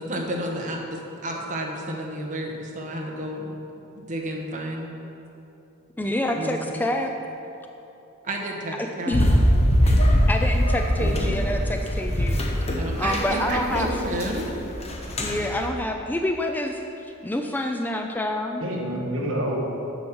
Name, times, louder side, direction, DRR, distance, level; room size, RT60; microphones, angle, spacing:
voice 1, 0.0-3.6 4.1-4.9 6.3-6.8 8.2-9.2 12.8-14.5, right 1 dB, 35° right, -1 dB, 1.1 m, -31 dB
voice 2, 6.0-7.1 8.8-9.4 10.3-12.4 13.0-13.9 15.2-18.6, left 1 dB, 10° left, 4 dB, 0.3 m, -27 dB
sound 1, 9.1-15.7, equal, 30° left, 1.0 m, -22 dB
voice 3, 11.0-11.4 18.6-19.6, right 1 dB, 65° right, -2 dB, 1.6 m, -29 dB
9.4 x 4.8 x 6.2 m, 2.9 s
head